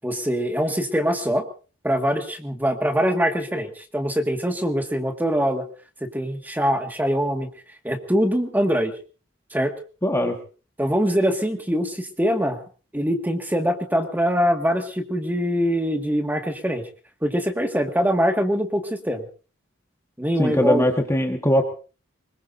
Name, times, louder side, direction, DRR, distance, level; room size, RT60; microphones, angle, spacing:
voice 1, 0.0-1.5 1.8-5.7 6.0-7.5 7.8-8.9 9.5-9.7 10.8-12.6 12.9-16.8 17.2-19.3 20.2-20.9, equal, 10° right, 4 dB, 2.0 m, -23 dB
voice 2, 10.0-10.4 20.4-21.6, left 1 dB, 15° left, 3 dB, 1.5 m, -20 dB
24.0 x 21.5 x 2.7 m, 0.36 s
head